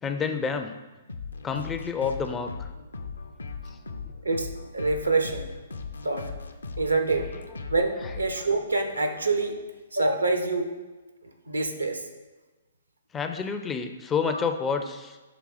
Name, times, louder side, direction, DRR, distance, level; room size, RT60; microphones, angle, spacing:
voice 1, 0.0-0.8 1.4-2.7 7.3-7.4 8.0-8.2 13.1-15.2, left 5 dB, 15° left, 7 dB, 0.4 m, -29 dB
sound 1, 1.1-9.5, left 4 dB, 75° left, 0.5 m, -39 dB
voice 2, 4.7-5.5 6.0-6.2 6.8-7.3 7.7-9.6 9.9-10.7 11.5-12.0, right 3 dB, 80° right, 5 dB, 0.8 m, -25 dB
6.1 x 3.3 x 4.7 m, 1.2 s
figure-of-eight pair, 120°, 0 cm